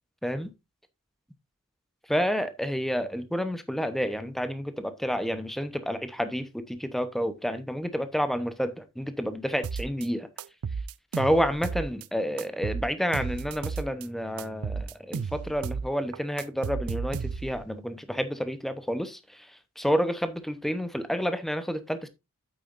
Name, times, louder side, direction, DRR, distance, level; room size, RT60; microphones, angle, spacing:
voice 1, 2.1-10.3 11.1-22.1, equal, ahead, 0.8 m, -29 dB
sound 1, 9.6-10.1 10.4-12.1 12.4-14.1 14.4-15.9 16.1-17.6, right 5 dB, 85° right, 0.5 m, -33 dB
8.9 x 8.4 x 2.5 m
head